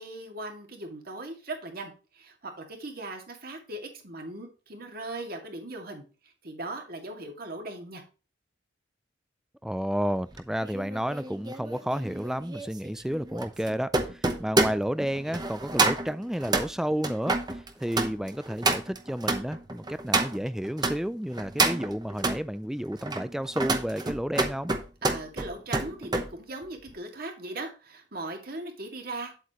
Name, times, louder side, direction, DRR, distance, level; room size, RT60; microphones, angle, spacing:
voice 1, 0.0-8.0 25.0-29.3, right 2 dB, 55° right, 2.1 m, -39 dB
voice 2, 9.6-24.7, equal, 5° right, 0.3 m, -31 dB
sound 1, 10.3-21.0 21.3-22.4 22.9-26.3 26.6-26.9, right 2 dB, 20° right, 0.9 m, -29 dB
8.6 x 8.0 x 3.0 m
head